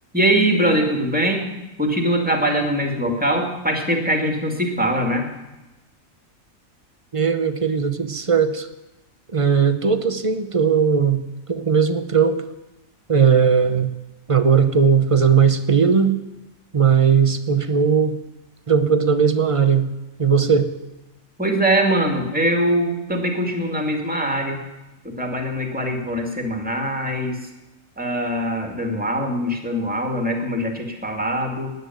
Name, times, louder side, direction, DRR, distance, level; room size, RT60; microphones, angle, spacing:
voice 1, 0.1-1.5 1.8-5.3 21.4-24.6 25.0-27.5 28.0-31.7, right 1 dB, 5° right, 3 dB, 2.2 m, -22 dB
voice 2, 7.1-8.7 9.3-11.2 11.5-12.4 13.1-13.9 14.3-16.2 16.7-18.2 18.7-19.9 20.2-20.7, right 6 dB, 30° right, 11 dB, 0.7 m, -18 dB
13.0 x 9.4 x 9.3 m, 1.0 s
omnidirectional pair, 1.4 m